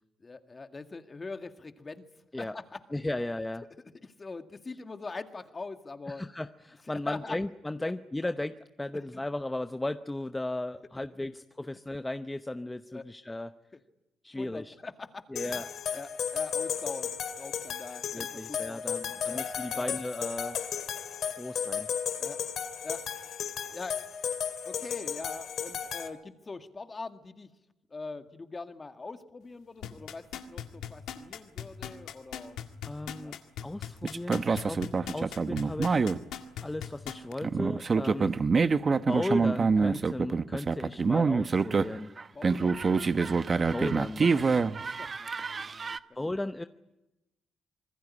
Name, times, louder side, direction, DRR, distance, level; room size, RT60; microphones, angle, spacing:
voice 1, 0.2-2.1 2.3-2.8 4.0-6.2 7.1-7.4 9.1-9.2 12.9-13.0 13.7-13.8 14.3-15.6 15.9-17.1 17.4-19.9 22.2-22.4 22.8-23.3 23.7-24.1 24.6-27.5 27.9-32.6 33.2-33.4 38.8-38.9 42.3-43.8 44.3-44.7 45.0-46.0, left 3 dB, 30° left, 7 dB, 2.1 m, -43 dB
voice 2, 2.9-3.6 6.1-13.5 14.2-14.7 15.3-15.7 18.1-20.6 21.4-21.9 32.8-33.4 33.6-34.9 35.1-36.1 36.6-38.4 38.9-42.1 43.6-44.6 46.1-46.7, left 2 dB, 15° left, 9 dB, 0.8 m, -36 dB
sound 1, 15.4-26.1, left 8 dB, 70° left, 2.2 m, -34 dB
sound 2, 29.8-37.3 37.8-37.9, left 10 dB, 85° left, 1.9 m, -39 dB
sound 3, 34.0-36.2 37.4-46.0, right 4 dB, 40° right, 0.9 m, -26 dB
26.0 x 20.5 x 9.9 m, 0.96 s
cardioid pair, 70°, 0 cm